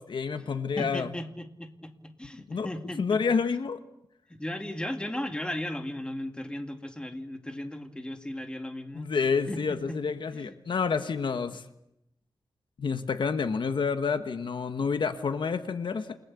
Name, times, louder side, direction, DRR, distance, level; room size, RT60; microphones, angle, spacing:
voice 1, 0.0-1.1 2.5-2.7 3.0-3.8 8.9-11.6 12.8-16.2, left 5 dB, 65° left, 9 dB, 1.4 m, -29 dB
voice 2, 0.8-3.2 4.3-9.1 9.5-10.0 10.3-10.6, left 1 dB, 10° left, 6 dB, 2.2 m, -36 dB
29.0 x 19.5 x 8.4 m, 0.81 s
wide cardioid pair, 145°, 9 cm